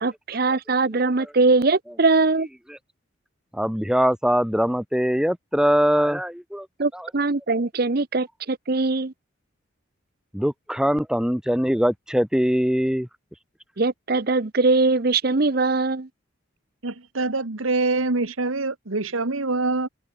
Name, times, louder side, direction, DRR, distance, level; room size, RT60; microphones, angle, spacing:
voice 1, 0.0-2.5 6.8-9.1 13.8-16.1, right 3 dB, 50° right, 0.8 m, -21 dB
voice 2, 3.5-6.7 6.9-7.1 10.3-13.1, equal, 5° right, 1.0 m, -22 dB
voice 3, 16.8-19.9, right 3 dB, 90° right, 1.7 m, -25 dB
head